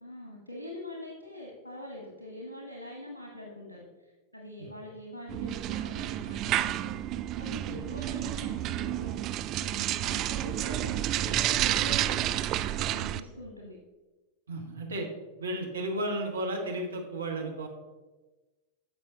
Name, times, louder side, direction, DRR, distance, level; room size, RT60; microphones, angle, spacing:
voice 1, 0.0-9.1 9.5-13.8, left 1 dB, 80° left, -1 dB, 1.3 m, -44 dB
sound 1, 5.3-13.2, right 13 dB, 35° right, 0.3 m, -30 dB
voice 2, 14.5-15.1 15.4-17.7, right 1 dB, 70° right, 1 dB, 1.4 m, -33 dB
14.0 x 5.3 x 2.8 m, 1.2 s
figure-of-eight pair, 90°, 0 cm